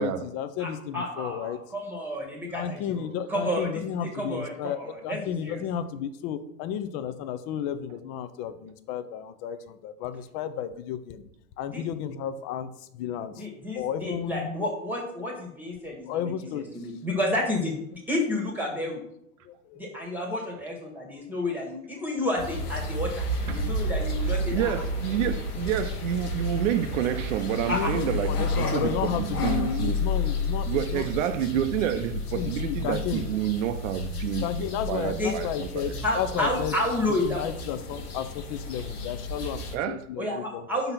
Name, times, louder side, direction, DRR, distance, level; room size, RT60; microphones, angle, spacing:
voice 1, 0.0-1.6 2.5-4.8 5.0-11.2 11.6-12.7 12.9-13.4 13.7-14.6 16.1-16.6 19.4-19.8 27.7-31.0 31.5-31.6 32.3-33.2 34.4-36.8 37.3-40.6, left 9 dB, 35° left, 12 dB, 0.6 m, -32 dB
voice 2, 0.6-5.6 11.7-11.8 13.3-19.0 19.8-23.3 23.5-24.7 27.7-27.9 35.2-35.3 36.0-37.4 40.2-40.9, left 1 dB, 5° right, -1 dB, 1.3 m, -30 dB
sound 1, 22.4-39.8, left 2 dB, 85° left, 1.4 m, -31 dB
voice 3, 24.5-30.0 30.7-35.9 39.7-40.0, right 10 dB, 60° right, 8 dB, 0.7 m, -29 dB
5.3 x 4.0 x 5.8 m, 0.74 s
hypercardioid pair, 110°, 44 cm